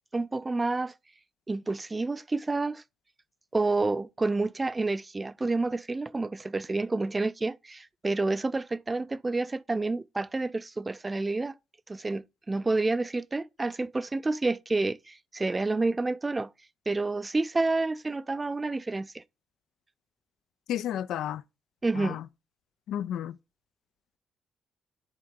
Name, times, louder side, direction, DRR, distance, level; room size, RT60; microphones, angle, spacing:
voice 1, 0.1-0.9 1.5-2.8 3.5-11.5 11.9-16.5 16.9-19.2 21.8-22.2, right 3 dB, 20° right, 0.3 m, -29 dB
voice 2, 20.7-21.4 22.0-22.3 22.9-23.4, left 10 dB, 80° left, 0.3 m, -32 dB
10.0 x 3.7 x 3.6 m
cardioid pair, 90°, 0 cm